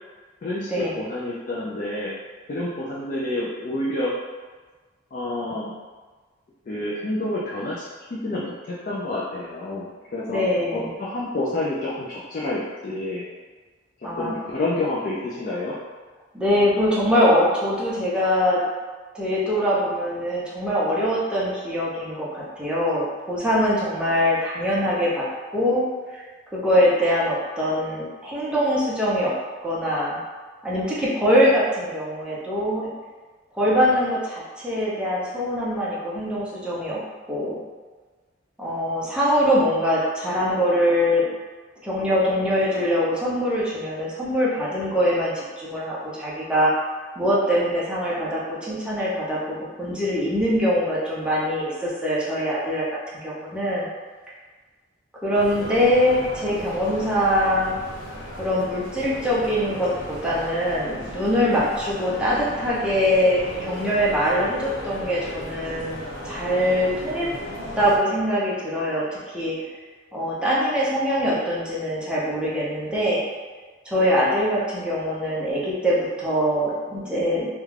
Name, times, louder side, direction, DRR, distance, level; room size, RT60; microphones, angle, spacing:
voice 1, 0.4-2.1 2.5-4.1 5.1-5.7 6.7-7.8 8.1-10.4 10.7-13.2 14.0-15.8, left 2 dB, 45° left, -6 dB, 0.4 m, -28 dB
voice 2, 10.3-10.9 14.0-14.3 16.3-18.6 19.1-25.2 25.5-25.9 26.1-26.2 26.5-29.3 29.6-30.2 30.6-32.9 33.5-37.0 37.3-37.6 38.6-41.2 41.8-46.7 47.2-52.9 53.1-53.9 55.2-57.8 58.4-66.0 66.2-67.3 67.8-69.5 70.1-73.3 73.8-77.5, equal, 5° right, -7 dB, 0.5 m, -23 dB
sound 1, 55.3-68.0, left 1 dB, 90° left, 0.6 m, -36 dB
2.4 x 2.2 x 3.2 m, 1.4 s
head